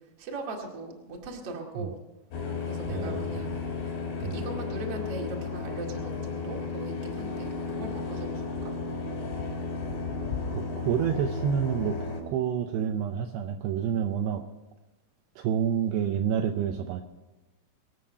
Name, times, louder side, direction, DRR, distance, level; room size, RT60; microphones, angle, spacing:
voice 1, 0.2-2.0 2.6-3.9 4.3-8.7, right 2 dB, 45° right, 0 dB, 2.2 m, -39 dB
sound 1, 2.3-12.2, left 4 dB, 80° left, 5.5 m, -33 dB
voice 2, 2.9-3.5 4.2-4.4 10.5-14.4 15.4-17.0, right 8 dB, 85° right, 5 dB, 2.4 m, -29 dB
24.5 x 8.7 x 5.4 m, 1.1 s
omnidirectional pair, 5.8 m